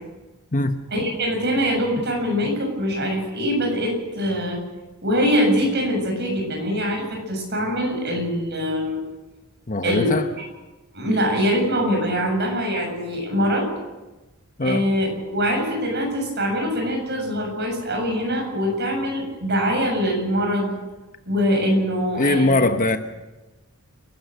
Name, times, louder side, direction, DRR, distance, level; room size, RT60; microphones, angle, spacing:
voice 1, 0.9-4.6 5.0-9.0 9.8-10.1 10.9-13.7 14.6-20.7 21.3-22.6, equal, 50° right, 2 dB, 7.4 m, -23 dB
voice 2, 9.7-10.3 14.6-14.9 22.1-23.0, left 2 dB, 35° left, 8 dB, 1.1 m, -21 dB
28.0 x 12.5 x 8.0 m, 1.1 s
head